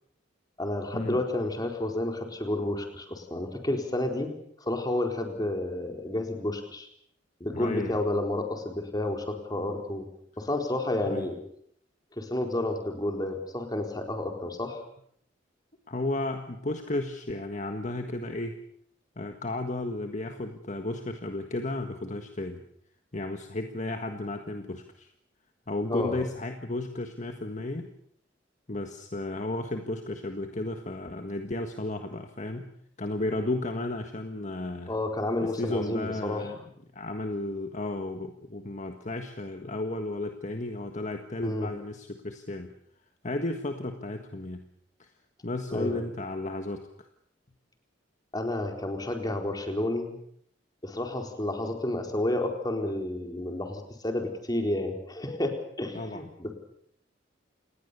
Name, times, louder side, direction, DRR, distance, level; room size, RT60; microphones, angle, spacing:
voice 1, 0.6-4.3 4.6-6.9 7.4-10.1 10.4-11.4 12.1-14.8 25.9-26.2 34.9-36.5 41.4-41.7 45.7-46.0 48.3-50.2 50.8-56.5, left 1 dB, 20° left, 3 dB, 4.2 m, -30 dB
voice 2, 7.5-8.0 11.0-11.3 15.9-18.6 19.1-22.6 23.1-25.1 25.7-27.9 28.7-32.7 33.0-34.9 35.4-36.6 36.9-42.7 43.2-44.6 45.0-45.1 45.4-46.8 55.9-56.2, left 2 dB, 40° left, 5 dB, 1.6 m, -33 dB
28.5 x 20.0 x 6.9 m, 0.70 s
head